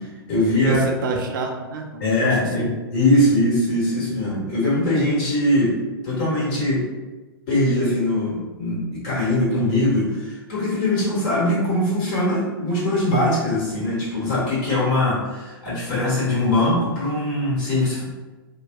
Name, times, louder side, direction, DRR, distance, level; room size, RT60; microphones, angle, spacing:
voice 1, 0.0-0.8 2.0-5.8 6.0-6.8 7.5-18.0, left 1 dB, 45° left, -7 dB, 1.5 m, -21 dB
voice 2, 0.6-2.7, right 3 dB, 55° right, 2 dB, 0.5 m, -28 dB
2.7 x 2.2 x 2.2 m, 1.2 s
figure-of-eight pair, 105°, 13 cm